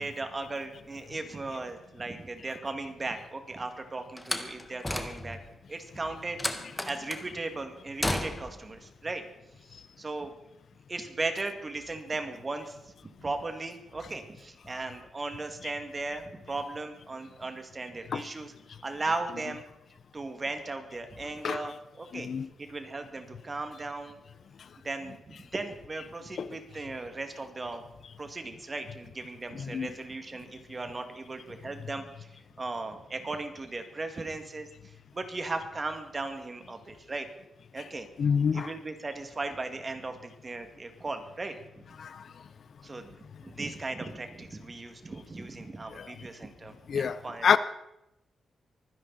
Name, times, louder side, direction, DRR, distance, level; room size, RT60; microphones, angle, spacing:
voice 1, 0.0-5.4 5.7-6.4 6.8-9.2 9.7-10.3 10.9-12.8 13.2-18.5 18.8-19.6 20.1-22.3 22.6-24.2 24.8-27.8 28.2-32.3 32.6-37.3 37.7-38.1 38.5-41.8 42.8-43.1 43.4-47.5, right 3 dB, 35° right, 2.3 m, -37 dB
Slam, 4.2-5.5 6.4-7.3 8.0-8.6, left 1 dB, 15° left, 1.6 m, -33 dB
voice 2, 22.1-22.5 26.4-26.5 29.7-29.9 38.2-38.7 42.0-42.2 46.0-46.1 46.9-47.6, left 7 dB, 65° left, 0.7 m, -27 dB
24.0 x 10.5 x 4.3 m
cardioid pair, 70°, 0 cm